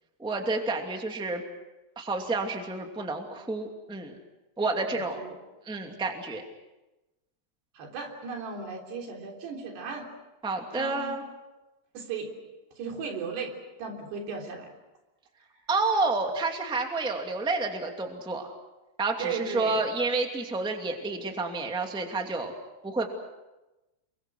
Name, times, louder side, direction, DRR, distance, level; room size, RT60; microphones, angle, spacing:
voice 1, 0.2-1.4 1.9-4.1 4.6-5.2 5.6-6.4 10.4-11.2 15.7-18.5 19.0-22.5 22.8-23.1, right 3 dB, ahead, 3 dB, 1.5 m, -29 dB
voice 2, 4.8-5.4 7.8-10.1 10.7-11.1 11.9-12.3 12.8-13.5 13.8-14.7 19.2-19.8, right 5 dB, 90° right, 2 dB, 5.6 m, -36 dB
29.0 x 23.0 x 6.3 m, 1.0 s
omnidirectional pair, 4.6 m